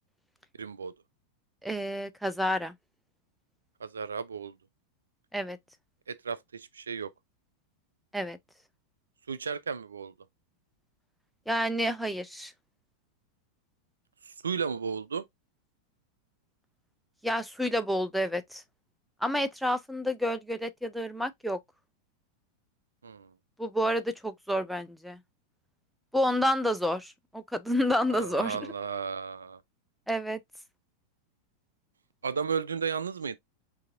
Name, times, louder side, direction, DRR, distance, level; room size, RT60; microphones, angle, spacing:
voice 1, 0.6-0.9 3.8-4.5 6.1-7.1 9.3-10.1 14.3-15.2 23.0-23.3 28.1-29.6 32.2-33.4, right 6 dB, 70° right, 0.3 m, -34 dB
voice 2, 1.6-2.7 5.3-5.6 8.1-8.4 11.5-12.5 17.2-18.6 19.2-21.6 23.6-25.2 26.1-28.7 30.1-30.4, equal, ahead, 0.6 m, -29 dB
6.4 x 2.7 x 2.5 m
figure-of-eight pair, 90°, 0 cm